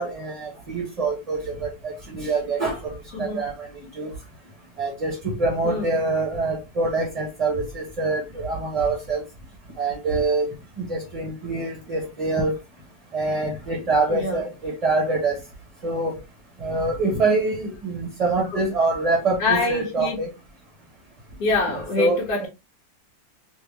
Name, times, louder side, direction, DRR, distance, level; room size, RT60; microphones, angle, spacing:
voice 1, 0.0-2.9 3.2-3.7 4.0-4.1 4.8-9.2 9.8-10.5 10.8-12.6 13.1-15.4 15.8-16.2 16.6-20.3 22.0-22.5, right 3 dB, 35° right, 0.7 m, -25 dB
voice 2, 14.1-14.4 18.5-18.6 19.4-20.2 21.4-22.5, left 3 dB, 75° left, 1.5 m, -25 dB
3.4 x 2.7 x 2.9 m
omnidirectional pair, 1.7 m